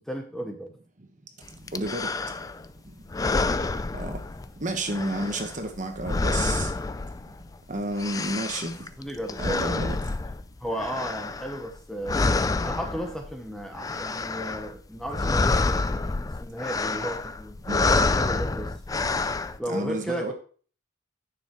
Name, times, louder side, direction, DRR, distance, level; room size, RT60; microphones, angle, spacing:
voice 1, 0.1-0.7 9.0-9.9 10.6-12.3 12.6-17.6 18.2-18.7 19.6-20.3, equal, 5° left, 0.9 m, -34 dB
sound 1, 1.7-2.7 3.1-4.6 4.9-7.5 7.8-11.8 12.0-13.3 13.6-14.7 15.0-19.6, left 3 dB, 20° left, 0.3 m, -28 dB
voice 2, 1.7-2.3 3.9-4.2 4.6-6.7 7.7-8.7 9.4-9.9 17.7-17.9 19.7-20.3, right 1 dB, 40° right, 1.3 m, -31 dB
9.3 x 7.0 x 3.1 m
head